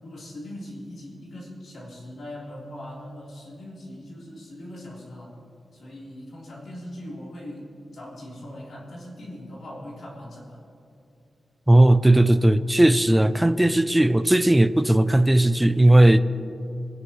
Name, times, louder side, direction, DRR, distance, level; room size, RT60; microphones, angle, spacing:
voice 1, 0.0-5.3 5.7-10.6, left 1 dB, 60° left, 3.6 m, -40 dB
voice 2, 11.7-16.2, right 1 dB, 10° right, 0.4 m, -17 dB
22.5 x 11.0 x 3.1 m
wide cardioid pair, 175°, 0 cm